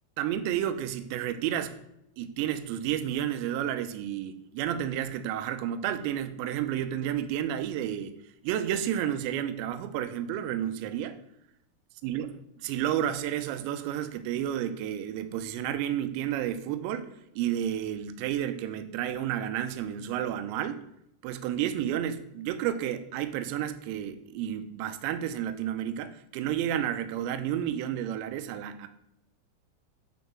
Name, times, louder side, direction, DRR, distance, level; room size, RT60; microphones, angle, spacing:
voice 1, 0.2-1.8 2.2-8.1 8.4-11.2 12.0-20.8 21.2-28.9, right 10 dB, 85° right, 10 dB, 2.6 m, -31 dB
9.3 x 3.9 x 3.5 m, 0.79 s
omnidirectional pair, 5.4 m